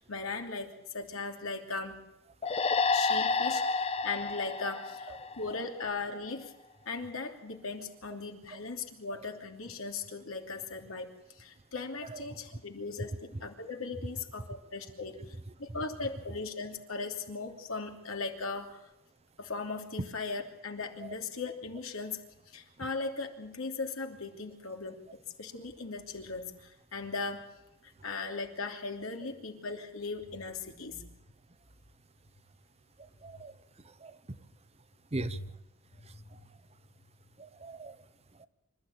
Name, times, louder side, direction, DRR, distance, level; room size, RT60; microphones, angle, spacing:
voice 1, 0.0-2.0 2.9-6.5 6.8-11.1 11.4-15.2 15.6-18.9 19.4-22.2 22.5-25.0 25.4-27.4 27.8-31.0 35.1-35.4 36.0-36.5, left 4 dB, 85° left, 3 dB, 2.9 m, -38 dB
sound 1, 2.4-5.9, left 4 dB, 30° left, 0.8 m, -30 dB
voice 2, 33.2-33.5 34.0-34.4 35.1-35.4 37.4-38.0 38.4-38.5, right 2 dB, 30° right, 13 dB, 0.8 m, -39 dB
26.5 x 13.0 x 8.8 m, 0.87 s
head